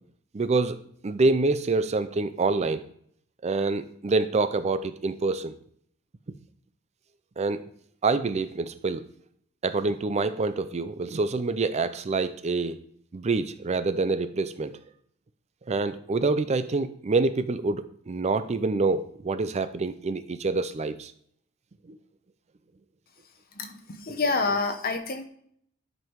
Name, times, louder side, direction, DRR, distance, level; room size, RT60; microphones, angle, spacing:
voice 1, 0.3-0.8 1.0-2.9 3.4-5.6 7.4-7.6 8.0-9.0 9.6-12.8 13.1-14.8 15.7-21.1 21.9-22.0, right 3 dB, 30° right, 11 dB, 0.4 m, -26 dB
voice 2, 23.6-25.3, left 3 dB, 45° left, 6 dB, 1.0 m, -28 dB
10.5 x 5.4 x 4.6 m, 0.65 s
head